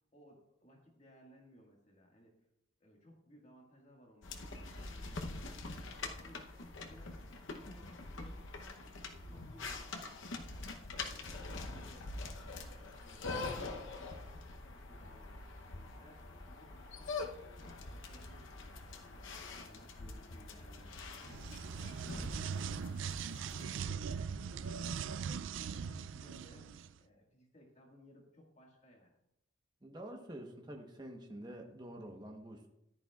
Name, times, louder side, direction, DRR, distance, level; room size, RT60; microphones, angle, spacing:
voice 1, 0.1-2.3 2.8-5.9 6.2-6.4 6.8-11.2 11.4-12.1 12.3-14.3 14.6-19.2 19.5-25.2 25.4-26.7 27.0-29.1, equal, 35° left, -1 dB, 1.8 m, -61 dB
sound 1, 4.2-23.8, left 3 dB, 65° left, 0.8 m, -45 dB
sound 2, 21.2-26.9, right 6 dB, 65° right, 0.3 m, -40 dB
voice 2, 29.8-32.7, right 1 dB, 20° right, 3 dB, 1.0 m, -47 dB
14.0 x 10.5 x 2.4 m, 0.84 s
head